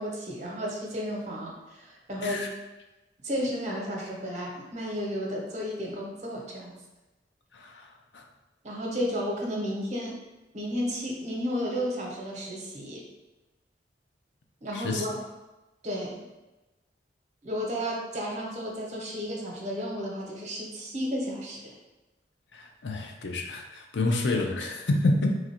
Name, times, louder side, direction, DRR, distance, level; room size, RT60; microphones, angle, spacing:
voice 1, 0.0-2.5 3.2-6.8 8.6-10.1 10.5-13.0 14.6-15.2 15.8-16.2 17.4-21.7, equal, 40° right, -2 dB, 0.9 m, -33 dB
voice 2, 7.5-8.2 14.7-15.1 22.5-25.4, left 2 dB, 90° left, 3 dB, 0.5 m, -28 dB
3.1 x 2.5 x 4.4 m, 1.1 s
head